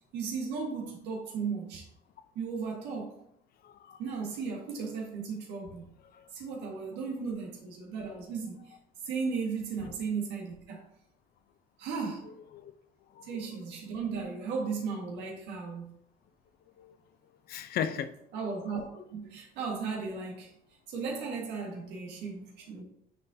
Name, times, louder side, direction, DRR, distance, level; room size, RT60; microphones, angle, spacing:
voice 1, 0.1-1.8 2.3-3.2 4.0-5.8 6.3-8.7 9.0-10.9 11.8-12.3 13.3-16.0 18.3-18.8 19.1-20.5 20.9-22.8, right 5 dB, 85° right, 1.7 m, -35 dB
voice 2, 3.6-4.0 6.1-6.3 9.8-9.9 12.5-12.7 13.1-13.5 16.8-17.0 17.5-18.1, left 8 dB, 65° left, 0.6 m, -37 dB
9.4 x 3.7 x 2.7 m
cardioid pair, 110°, 17 cm